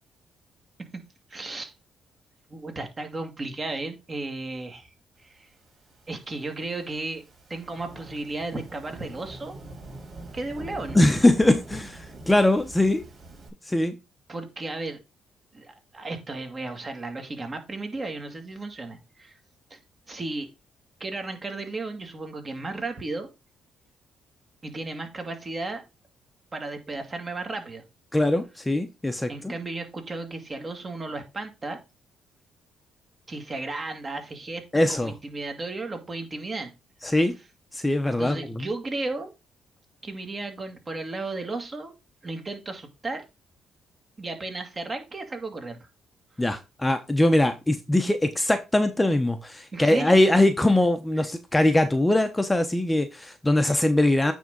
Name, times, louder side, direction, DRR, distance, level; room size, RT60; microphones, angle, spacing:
voice 1, 1.3-1.7 2.5-4.9 5.2-5.5 6.1-7.2 7.5-9.6 10.3-11.0 14.3-15.0 15.5-19.4 19.7-19.8 20.1-20.5 21.0-23.3 24.6-25.8 26.5-27.8 29.3-31.8 33.3-34.6 34.9-36.7 37.0-37.2 38.0-39.3 40.0-41.9 42.2-43.2 44.2-45.8 49.7-50.2 51.2-51.3, right 2 dB, 30° right, 5 dB, 2.0 m, -34 dB
Thunderstorm / Rain, 5.8-13.5, right 2 dB, 55° right, 4.6 m, -43 dB
voice 2, 10.9-13.0 13.7-13.9 28.1-29.5 34.7-35.1 37.0-37.3 37.7-38.7 46.4-54.3, left 1 dB, 10° left, 8 dB, 0.9 m, -22 dB
9.2 x 3.6 x 5.3 m, 0.26 s
cardioid pair, 90°, 0 cm